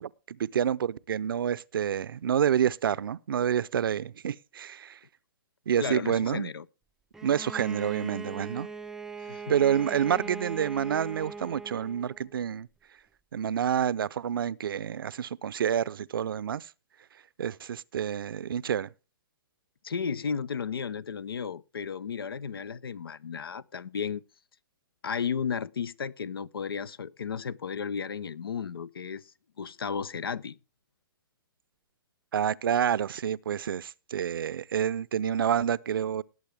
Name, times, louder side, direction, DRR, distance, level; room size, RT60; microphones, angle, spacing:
voice 1, 0.0-5.0 5.7-6.5 7.2-8.7 9.5-12.7 13.3-16.7 17.4-18.9 32.3-36.2, right 9 dB, 75° right, 0.6 m, -28 dB
voice 2, 5.8-6.7 9.2-9.5 9.8-10.3 19.8-24.2 25.0-29.2 29.6-30.6, left 6 dB, 90° left, 0.6 m, -34 dB
Bowed string instrument, 7.1-12.3, right 4 dB, 5° right, 0.5 m, -40 dB
18.5 x 8.2 x 3.4 m
hypercardioid pair, 135°, 12 cm